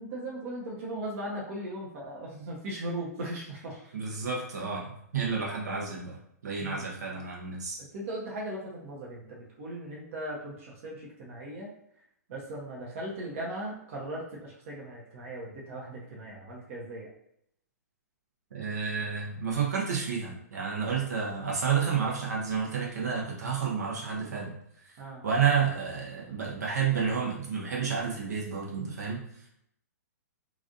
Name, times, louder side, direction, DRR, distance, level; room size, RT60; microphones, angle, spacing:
voice 1, 0.0-3.9 6.6-6.8 7.9-11.7 12.3-17.1 25.0-25.3, right 1 dB, 50° right, -4 dB, 1.0 m, -38 dB
voice 2, 3.9-6.2 6.4-7.8 18.5-24.9 25.2-29.4, right 6 dB, 75° right, -3 dB, 1.1 m, -30 dB
3.1 x 2.6 x 2.6 m, 0.74 s
hypercardioid pair, 125°, 9 cm